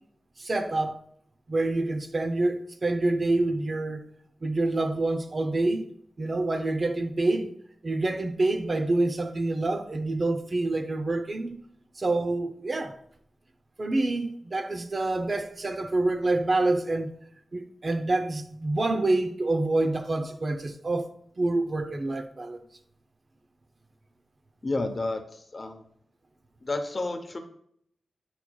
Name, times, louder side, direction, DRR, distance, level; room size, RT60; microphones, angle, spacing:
voice 1, 0.4-1.0 1.5-4.0 4.4-5.9 6.2-7.5 7.8-11.6 12.0-12.9 13.8-17.1 17.5-21.1 21.4-22.6, right 2 dB, 35° right, 0.6 m, -27 dB
voice 2, 24.6-25.8 26.6-27.4, left 2 dB, 30° left, 0.8 m, -31 dB
9.7 x 4.4 x 2.3 m
wide cardioid pair, 145°, 0 cm